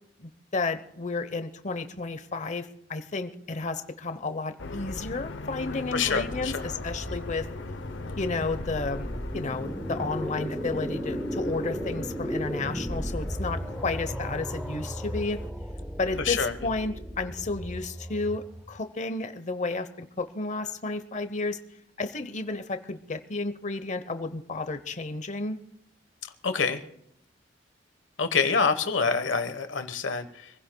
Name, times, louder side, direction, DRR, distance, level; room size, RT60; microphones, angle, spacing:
voice 1, 0.2-7.5 8.2-15.4 16.0-21.6 22.0-25.6, left 3 dB, 40° left, 10 dB, 0.9 m, -32 dB
sound 1, 4.6-15.5, left 2 dB, 70° left, 0.8 m, -40 dB
sound 2, 5.6-18.8, equal, 5° right, 0.7 m, -35 dB
voice 2, 5.9-6.6 16.2-16.5 26.4-26.8 28.2-30.5, left 5 dB, 85° left, 9 dB, 1.2 m, -26 dB
26.0 x 16.0 x 2.3 m, 0.73 s
head